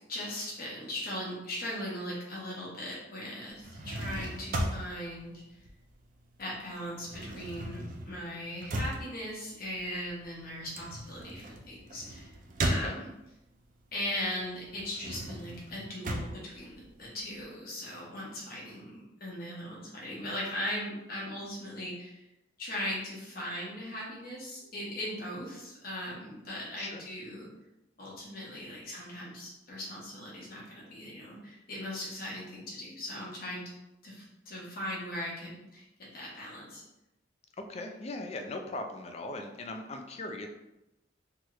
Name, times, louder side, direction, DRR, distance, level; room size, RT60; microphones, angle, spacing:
voice 1, 0.0-5.4 6.4-12.3 12.6-13.1 13.9-22.2 22.6-27.5 28.0-33.8 34.0-36.8, left 1 dB, 55° left, -5 dB, 1.0 m, -39 dB
sound 1, 3.5-6.4 6.6-13.5 13.9-17.5, right 1 dB, 45° right, 0.4 m, -37 dB
voice 2, 37.7-40.5, left 2 dB, 35° left, 4 dB, 0.3 m, -39 dB
2.9 x 2.4 x 3.0 m, 0.91 s
head